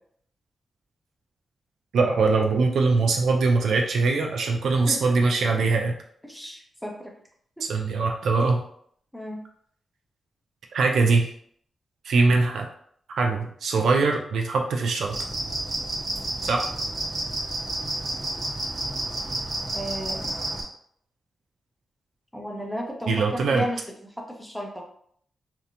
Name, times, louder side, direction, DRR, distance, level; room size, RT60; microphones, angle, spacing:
voice 1, 1.9-6.0 7.6-8.6 10.7-11.3 12.0-12.7 13.1-15.2 16.4-16.7 23.1-23.6, right 3 dB, 85° right, 2 dB, 0.3 m, -22 dB
voice 2, 4.9-5.3 6.2-7.1 7.6-7.7 9.1-9.4 19.7-20.3 22.3-24.8, equal, 5° left, 0 dB, 0.6 m, -34 dB
sound 1, 15.1-20.6, right 2 dB, 40° right, 0.7 m, -30 dB
2.8 x 2.1 x 2.5 m, 0.64 s
cardioid pair, 80°, 0 cm